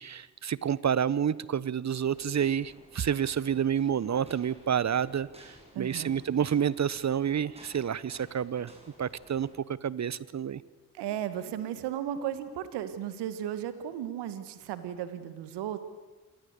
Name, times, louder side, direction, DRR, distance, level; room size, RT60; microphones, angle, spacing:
voice 1, 0.0-8.7 9.0-10.6, right 8 dB, 40° right, 20 dB, 1.0 m, -29 dB
sound 1, 1.9-9.5, right 1 dB, 15° right, 7.5 m, -55 dB
voice 2, 5.7-6.1 10.9-15.8, right 10 dB, 75° right, 12 dB, 1.8 m, -35 dB
27.5 x 19.0 x 8.3 m, 1.3 s
hypercardioid pair, 40°, 41 cm